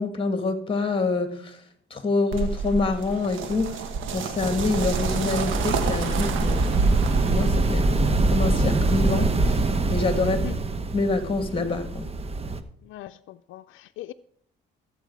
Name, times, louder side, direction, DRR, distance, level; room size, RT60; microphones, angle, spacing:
voice 1, 0.0-1.6 1.9-9.6 9.9-10.5 10.9-12.1, left 3 dB, 25° left, 2.3 m, -27 dB
sound 1, 2.3-7.7, right 5 dB, 80° right, 1.4 m, -29 dB
sound 2, 4.4-12.6, right 2 dB, 30° right, 1.0 m, -24 dB
voice 2, 10.2-10.6 12.8-14.1, left 15 dB, 85° left, 0.5 m, -40 dB
14.0 x 8.2 x 4.8 m
cardioid pair, 90°, 20 cm